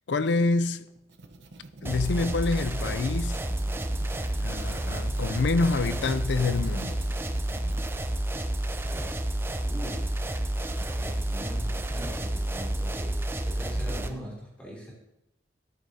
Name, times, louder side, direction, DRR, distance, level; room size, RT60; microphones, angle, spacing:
voice 1, 0.1-0.9 1.8-3.4 4.4-7.0, left 3 dB, 70° left, 0.5 m, -27 dB
sound 1, 0.9-7.9, right 2 dB, 75° right, 0.8 m, -48 dB
sound 2, 1.8-14.1, right 1 dB, 10° right, 0.5 m, -30 dB
voice 2, 9.6-10.2 10.7-14.9, equal, 5° left, 3.0 m, -41 dB
13.5 x 8.2 x 2.8 m
head